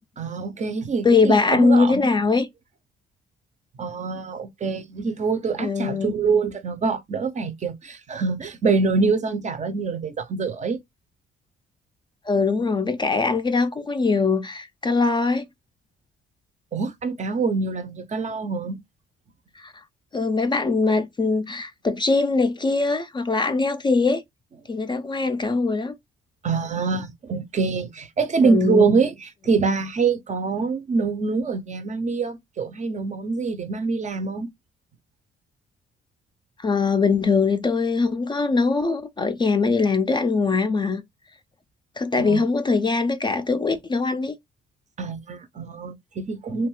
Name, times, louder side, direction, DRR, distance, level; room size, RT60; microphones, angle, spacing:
voice 1, 0.2-2.1 3.8-10.8 16.7-18.8 26.4-34.5 42.2-42.4 45.0-46.7, right 4 dB, 40° right, 0.5 m, -25 dB
voice 2, 1.0-2.5 5.6-6.1 12.3-15.5 19.6-19.7 20.1-24.2 24.7-25.9 28.4-28.9 36.6-41.0 42.0-44.3, left 4 dB, 25° left, 0.3 m, -22 dB
2.6 x 2.2 x 3.0 m
cardioid pair, 90°, 20 cm